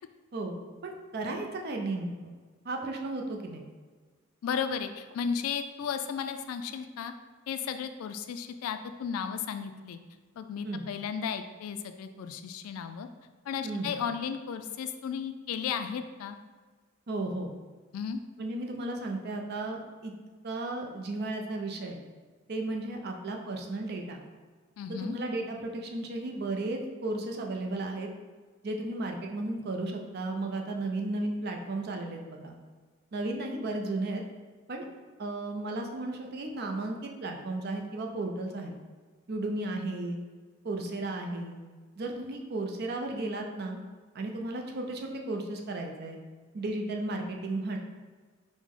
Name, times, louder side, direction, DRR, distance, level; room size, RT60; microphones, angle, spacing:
voice 1, 0.8-2.3 2.6-3.6 10.6-10.8 13.6-13.9 17.1-17.5 18.4-20.1 20.4-22.0 22.5-24.2 24.9-28.1 28.6-32.5 33.1-34.2 34.7-34.9 35.2-38.7 39.3-40.2 40.6-41.6 42.0-43.8 44.1-46.2 46.5-47.8, right 2 dB, 50° right, 2 dB, 0.5 m, -34 dB
voice 2, 4.4-7.1 7.5-10.0 10.4-13.1 13.5-16.4 17.9-18.2 24.8-25.2, left 7 dB, 85° left, 8 dB, 0.3 m, -34 dB
4.9 x 2.1 x 3.6 m, 1.4 s
head